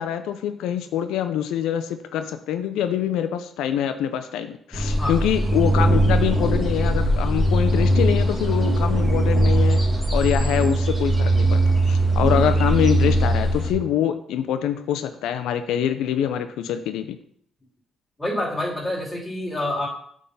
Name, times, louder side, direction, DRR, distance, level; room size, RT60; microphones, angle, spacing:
voice 1, 0.0-9.8 10.1-17.2, left 10 dB, 90° left, 9 dB, 0.5 m, -25 dB
sound 1, 4.7-13.7, right 1 dB, 15° right, 2.3 m, -20 dB
voice 2, 18.2-19.9, left 1 dB, 10° left, -4 dB, 3.7 m, -27 dB
8.5 x 3.7 x 5.4 m, 0.64 s
cardioid pair, 90°, 0 cm